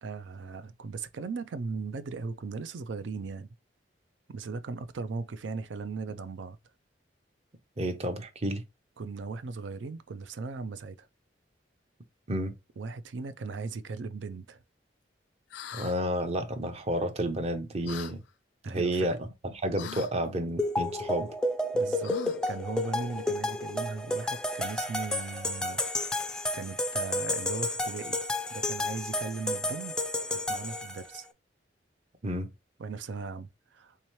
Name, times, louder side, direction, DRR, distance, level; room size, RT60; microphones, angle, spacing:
voice 1, 0.0-3.5 4.3-6.6 9.0-11.1 12.8-14.6 18.6-19.2 21.7-22.1 22.5-25.8 26.5-28.2 28.5-29.9 30.3-31.3 32.8-34.0, right 4 dB, 85° right, 0.4 m, -38 dB
voice 2, 7.8-8.6 12.3-12.5 15.7-18.2 18.7-21.3 32.2-32.5, right 1 dB, 35° right, 0.6 m, -31 dB
sound 1, 15.5-16.0 17.9-18.1 19.8-20.1 22.0-22.5, left 7 dB, 75° left, 0.4 m, -41 dB
sound 2, 20.6-31.2, left 1 dB, 5° left, 0.3 m, -31 dB
3.6 x 2.9 x 3.0 m
head